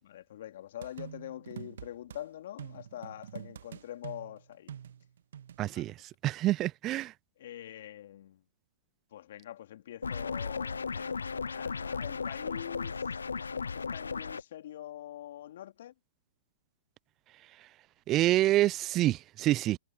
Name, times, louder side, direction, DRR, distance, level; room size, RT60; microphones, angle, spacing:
voice 1, 0.0-4.7 5.7-5.9 7.4-8.4 9.1-13.4 13.7-15.9, left 12 dB, 60° left, 2.4 m, -45 dB
sound 1, 0.8-2.2 2.6-5.7, right 9 dB, 70° right, 1.6 m, -46 dB
voice 2, 5.6-5.9 6.2-7.1 18.1-19.8, right 15 dB, 30° right, 0.5 m, -27 dB
sound 2, 10.0-14.4, left 5 dB, 85° left, 0.5 m, -35 dB
hypercardioid pair, 115°, 0 cm